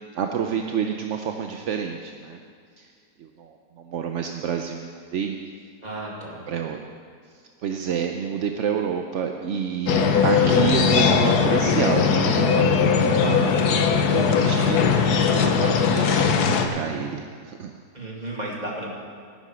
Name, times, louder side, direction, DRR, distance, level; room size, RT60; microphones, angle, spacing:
voice 1, 0.1-2.4 2.8-2.9 3.2-5.4 6.5-6.8 7.6-17.7, right 7 dB, 60° right, 4 dB, 0.8 m, -29 dB
voice 2, 5.8-6.4 17.9-18.9, right 1 dB, 25° right, -3 dB, 2.4 m, -33 dB
sound 1, 9.9-16.7, left 6 dB, 70° left, 1.4 m, -19 dB
14.0 x 9.5 x 6.2 m, 2.1 s
omnidirectional pair, 1.8 m